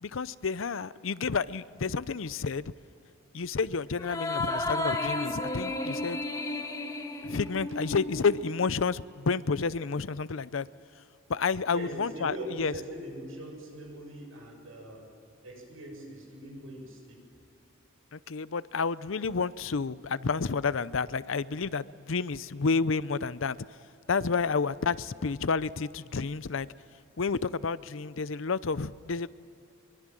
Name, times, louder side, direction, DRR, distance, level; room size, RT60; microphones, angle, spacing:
voice 1, 0.0-2.6 3.3-6.2 7.2-10.7 11.3-12.7 18.1-23.6 24.1-26.7 27.2-29.3, left 4 dB, 75° left, 0.6 m, -30 dB
sound 1, 4.0-8.7, left 2 dB, 15° left, 1.4 m, -33 dB
voice 2, 11.7-15.1 15.4-17.2, equal, 85° right, 7.8 m, -41 dB
24.0 x 23.5 x 7.6 m
head